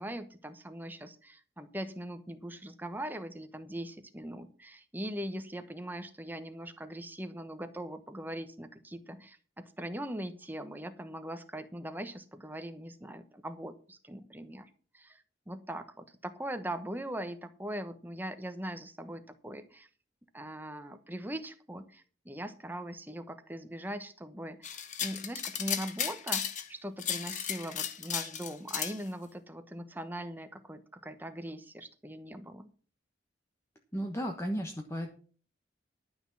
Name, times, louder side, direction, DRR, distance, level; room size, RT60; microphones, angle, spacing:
voice 1, 0.0-19.9 20.3-32.7, right 1 dB, 10° right, 8 dB, 1.0 m, -41 dB
sound 1, 24.6-26.7 27.0-29.0, left 9 dB, 40° left, 1.1 m, -35 dB
voice 2, 33.9-35.1, equal, 15° left, 2 dB, 1.1 m, -34 dB
12.0 x 6.2 x 7.2 m, 0.41 s
head